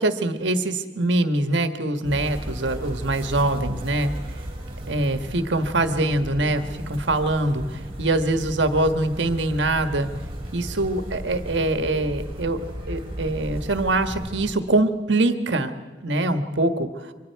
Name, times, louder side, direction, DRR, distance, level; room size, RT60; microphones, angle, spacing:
voice 1, 0.0-4.1 4.9-10.1 10.5-12.6 12.9-15.7 16.0-17.1, right 2 dB, 70° right, 8 dB, 1.5 m, -23 dB
sound 1, 2.0-14.5, equal, 30° right, 5.0 m, -35 dB
28.5 x 24.5 x 4.7 m, 1.3 s
head